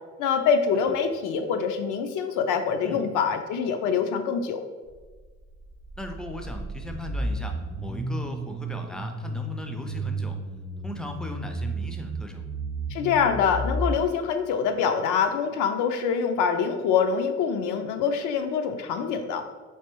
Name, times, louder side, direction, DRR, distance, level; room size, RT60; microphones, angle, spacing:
voice 1, 0.2-4.6 12.9-19.4, left 6 dB, 85° left, 6 dB, 0.5 m, -25 dB
sound 1, 5.0-13.9, right 1 dB, 50° right, 0.7 m, -33 dB
voice 2, 6.0-10.4 10.8-12.5, left 1 dB, ahead, 4 dB, 0.3 m, -37 dB
3.3 x 2.9 x 3.0 m, 1.4 s
cardioid pair, 90°, 30 cm